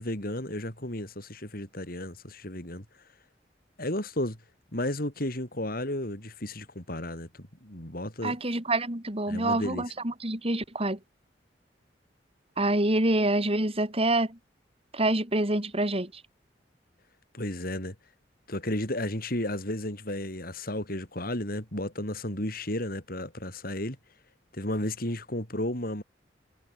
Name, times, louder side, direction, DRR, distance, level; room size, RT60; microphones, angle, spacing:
voice 1, 0.0-2.8 3.8-4.4 4.7-8.4 9.3-9.8 17.3-17.9 18.5-24.0 24.5-26.0, left 1 dB, 55° left, 6.4 m, -33 dB
voice 2, 8.2-11.0 12.6-14.4 14.9-16.1, right 1 dB, 35° right, 4.3 m, -26 dB
head